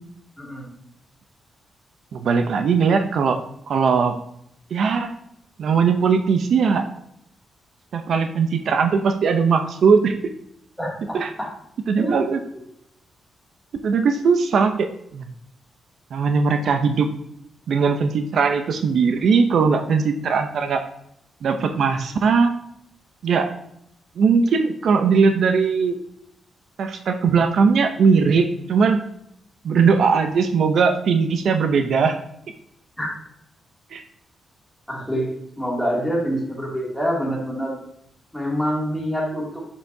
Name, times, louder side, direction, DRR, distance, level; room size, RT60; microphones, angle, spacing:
voice 1, 0.4-0.7 10.8-11.5 12.0-12.2 33.0-33.1 34.9-37.8 38.3-39.5, equal, 5° left, -4 dB, 2.3 m, -26 dB
voice 2, 2.1-3.4 3.7-4.2 4.7-5.1 5.6-6.8 7.9-10.1 11.1-11.3 11.9-12.4 13.8-14.9 15.1-15.2 16.1-17.1 17.7-20.8 21.4-22.5 23.2-23.5 24.2-26.0 26.8-29.0 29.6-32.2 33.9-34.0, right 5 dB, 65° right, 7 dB, 0.5 m, -19 dB
7.0 x 6.6 x 2.6 m, 0.76 s
cardioid pair, 135°, 0 cm